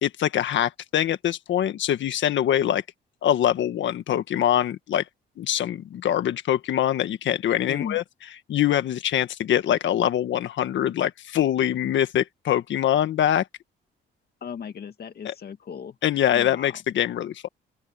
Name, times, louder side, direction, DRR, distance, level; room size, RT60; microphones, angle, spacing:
voice 1, 0.0-2.8 3.2-5.0 5.4-8.0 8.5-13.4 15.2-15.3 16.0-17.5, left 11 dB, 70° left, 1.6 m, -24 dB
voice 2, 7.7-8.0 14.4-16.0 16.3-16.8, left 7 dB, 50° left, 2.1 m, -36 dB
open air
cardioid pair, 90°, 20 cm